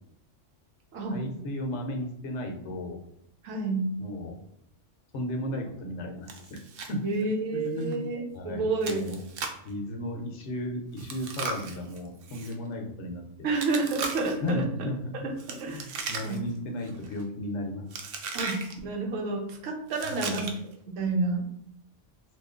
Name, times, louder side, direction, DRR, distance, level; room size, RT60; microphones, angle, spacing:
voice 1, 1.1-3.0 4.0-4.4 5.1-6.6 6.9-7.0 7.5-9.2 9.6-13.2 14.4-15.3 15.7-17.9 20.0-20.4, left 1 dB, 70° left, 2 dB, 0.9 m, -34 dB
voice 2, 3.4-3.9 7.0-9.1 13.4-14.6 15.2-15.3 15.6-15.9 16.2-16.4 18.3-20.5 20.9-21.5, right 3 dB, 90° right, 1 dB, 1.1 m, -29 dB
Chewing mastication, 6.3-6.9 7.2-7.3 7.8-7.9 8.8-9.7 11.0-12.5 13.6-14.5 15.4-16.6 16.8-17.2 17.9-18.7 19.9-20.7, right 4 dB, 60° right, 0.6 m, -37 dB
3.0 x 2.4 x 3.6 m, 0.76 s
omnidirectional pair, 1.3 m